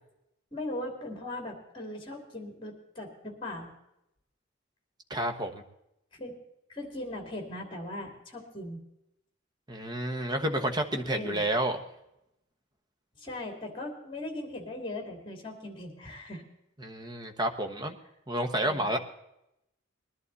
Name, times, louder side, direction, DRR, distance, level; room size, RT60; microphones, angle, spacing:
voice 1, 0.5-3.7 6.1-6.4 6.7-8.8 11.1-11.4 13.2-16.4 18.6-18.9, left 1 dB, 25° left, 3 dB, 2.8 m, -39 dB
voice 2, 5.1-5.6 9.7-11.8 16.8-18.0 18.3-19.0, right 1 dB, 20° right, 5 dB, 1.1 m, -30 dB
20.5 x 11.5 x 4.1 m, 0.83 s
head